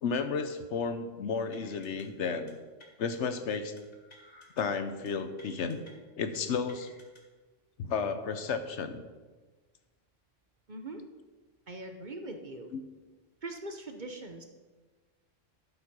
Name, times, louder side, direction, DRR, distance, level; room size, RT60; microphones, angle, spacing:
voice 1, 0.0-2.6 3.0-3.7 4.6-5.8 6.2-6.9 7.8-9.0 12.7-12.8, left 5 dB, 70° left, 9 dB, 1.1 m, -32 dB
sound 1, 1.5-2.0 2.3-2.5 2.8-3.2 3.8-4.6 4.9-5.1 5.4-5.9 6.3-7.2, left 1 dB, 35° left, 1.7 m, -56 dB
voice 2, 10.7-11.0 11.7-12.7 13.4-14.5, right 2 dB, 45° right, 6 dB, 0.9 m, -41 dB
12.0 x 5.7 x 6.1 m, 1.3 s
omnidirectional pair, 1.3 m